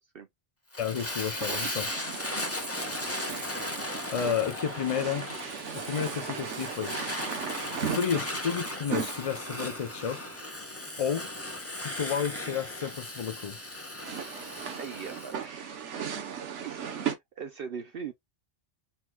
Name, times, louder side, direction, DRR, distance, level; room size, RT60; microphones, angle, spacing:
Fire, 0.7-15.3, left 1 dB, 15° left, 0.8 m, -37 dB
voice 1, 0.8-1.9 4.1-5.3 5.7-6.9 7.8-10.2 11.0-11.3 11.8-13.6, left 7 dB, 50° left, 0.4 m, -31 dB
sound 1, 1.0-17.2, right 7 dB, 85° right, 1.2 m, -38 dB
voice 2, 14.8-15.8 16.6-18.1, right 6 dB, 60° right, 0.7 m, -40 dB
4.4 x 4.0 x 2.2 m
omnidirectional pair, 1.2 m